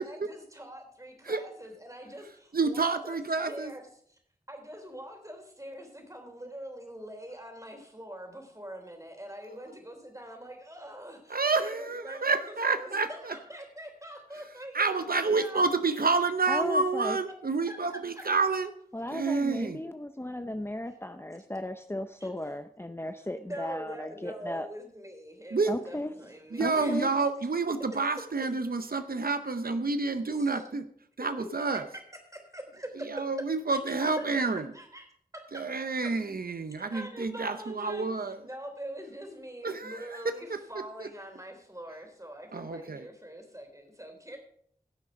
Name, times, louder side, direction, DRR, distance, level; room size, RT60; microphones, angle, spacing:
voice 1, 0.0-3.1 3.5-4.2 4.5-16.0 17.7-17.8 21.3-21.4 22.2-22.3 23.5-27.1 30.3-30.6 31.2-31.5 32.3-33.2 33.7-34.5 34.7-35.1 35.3-35.6 36.9-38.1 38.4-44.4, equal, 20° right, 3 dB, 3.5 m, -44 dB
voice 2, 2.5-3.7 9.5-9.6 11.3-13.3 14.7-18.7 19.1-19.8 25.5-25.8 26.5-30.9 31.2-31.8 33.1-34.7 35.5-38.4 39.6-40.6 41.0-41.1 42.5-43.1, right 4 dB, 80° right, 9 dB, 0.7 m, -29 dB
voice 3, 16.5-17.2 18.9-24.7 25.7-26.1 26.6-27.1, left 1 dB, 15° left, 8 dB, 0.7 m, -35 dB
17.0 x 6.4 x 5.1 m, 0.64 s
wide cardioid pair, 50°, 15 cm